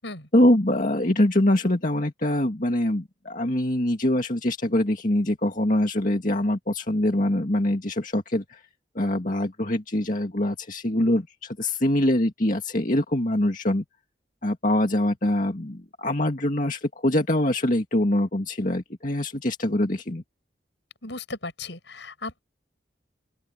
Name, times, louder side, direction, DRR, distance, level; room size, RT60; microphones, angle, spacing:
voice 1, 0.3-8.6 9.0-13.8 14.4-20.2, left 1 dB, 45° left, 2.2 m, -24 dB
voice 2, 21.0-22.4, left 3 dB, 75° left, 6.7 m, -36 dB
open air
head